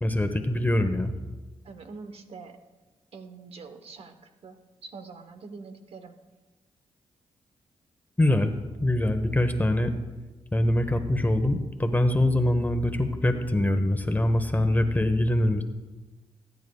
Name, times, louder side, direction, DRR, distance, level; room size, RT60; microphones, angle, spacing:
voice 1, 0.0-1.1 8.2-8.5 8.8-9.9 10.5-15.6, left 1 dB, 15° left, 7 dB, 1.0 m, -24 dB
voice 2, 1.6-2.6 3.1-4.1 4.4-6.2, right 4 dB, 60° right, 8 dB, 1.0 m, -44 dB
19.5 x 9.5 x 2.3 m, 1.2 s
cardioid pair, 65°, 11 cm